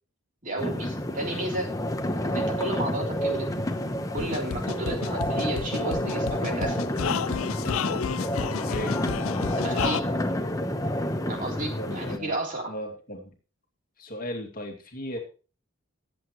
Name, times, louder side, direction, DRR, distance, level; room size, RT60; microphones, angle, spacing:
voice 1, 0.4-1.7 2.2-3.5 4.1-6.8 8.8-8.9 9.6-10.1 11.3-12.7, right 2 dB, 35° right, 1 dB, 3.5 m, -32 dB
sound 1, 0.6-12.2, left 1 dB, 15° left, 1.0 m, -29 dB
sound 2, 4.2-10.0, left 7 dB, 75° left, 0.4 m, -31 dB
voice 2, 8.5-9.0 11.8-12.3 12.7-13.3 14.0-15.2, equal, 40° left, 3 dB, 2.4 m, -36 dB
21.0 x 8.1 x 3.1 m, 0.35 s
head